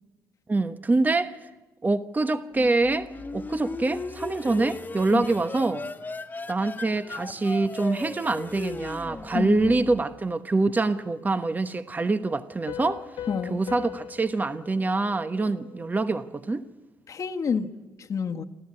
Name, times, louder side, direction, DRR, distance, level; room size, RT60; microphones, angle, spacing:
voice 1, 0.5-1.4 1.8-5.8 6.5-13.1 13.5-16.7, right 3 dB, 25° right, 1.1 m, -25 dB
sound 1, 2.5-10.2, left 3 dB, 25° left, 1.7 m, -37 dB
voice 2, 9.3-9.9 13.3-13.6 17.1-18.4, left 5 dB, 50° left, 1.5 m, -29 dB
Piano, 12.7-16.1, left 10 dB, 80° left, 1.8 m, -40 dB
27.5 x 14.0 x 9.8 m
supercardioid pair, 75°, 7 cm